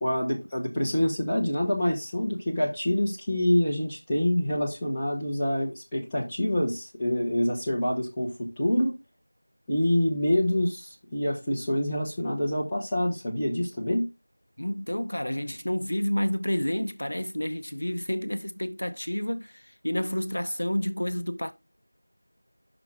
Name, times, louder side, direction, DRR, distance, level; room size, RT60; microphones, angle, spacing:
voice 1, 0.0-8.9 9.7-14.1, left 1 dB, 5° left, 0.7 m, -26 dB
voice 2, 14.6-21.5, left 1 dB, 50° left, 0.6 m, -29 dB
5.9 x 5.8 x 3.6 m
figure-of-eight pair, 175°, 0 cm